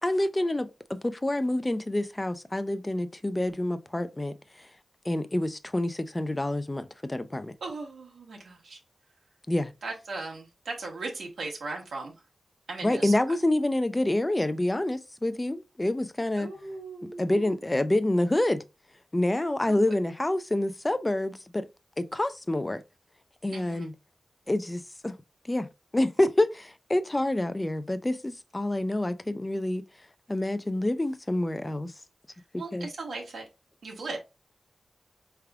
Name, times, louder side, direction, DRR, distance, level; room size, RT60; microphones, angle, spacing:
voice 1, 0.0-4.7 5.0-7.5 9.5-9.7 12.8-16.5 17.0-18.6 19.1-21.6 22.0-22.8 23.4-23.9 24.5-25.2 25.4-25.7 25.9-29.8 30.3-31.9 32.5-32.9, left 1 dB, 20° left, 0.4 m, -27 dB
voice 2, 7.6-8.8 9.8-12.1 12.7-13.1 16.4-17.5 19.6-19.7 23.5-23.8 32.6-33.4 33.8-34.2, right 3 dB, 90° right, 1.3 m, -37 dB
4.7 x 3.4 x 2.3 m
wide cardioid pair, 100°, 0 cm